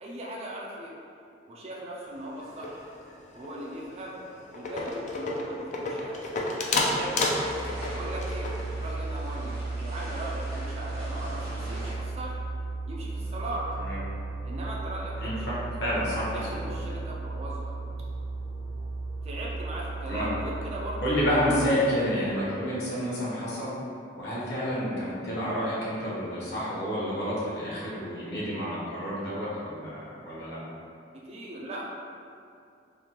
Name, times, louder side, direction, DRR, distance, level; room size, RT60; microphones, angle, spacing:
voice 1, 0.0-0.9 1.5-2.9 3.3-4.2 4.5-6.2 6.8-7.2 7.9-8.5 8.8-12.4 12.9-13.8 14.4-15.6 16.3-17.7 19.2-21.6 31.3-31.8, right 1 dB, 35° right, -4 dB, 0.4 m, -38 dB
sound 1, 2.4-3.2 3.4-3.7 4.1-4.2 4.5-8.9, left 2 dB, 40° left, 0.3 m, -30 dB
sound 2, 6.8-11.9, equal, 55° right, 0.9 m, -43 dB
sound 3, 7.2-21.7, right 3 dB, 85° left, 0.7 m, -35 dB
voice 2, 15.2-16.6 20.1-20.3 21.0-23.8 24.2-30.6, equal, 60° left, -8 dB, 0.9 m, -29 dB
3.3 x 2.3 x 2.8 m, 2.5 s
head